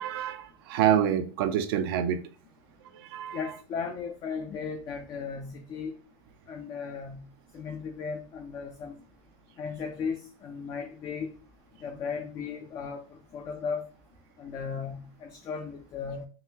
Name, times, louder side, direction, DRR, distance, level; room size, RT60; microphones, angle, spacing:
voice 1, 0.0-2.2 2.9-3.4, right 9 dB, 75° right, 0.4 m, -27 dB
voice 2, 3.3-5.9 6.5-7.2 7.5-8.9 9.6-11.3 11.8-13.9 14.4-16.3, left 5 dB, 30° left, 0.3 m, -36 dB
3.6 x 2.1 x 2.7 m
supercardioid pair, 145°, 12 cm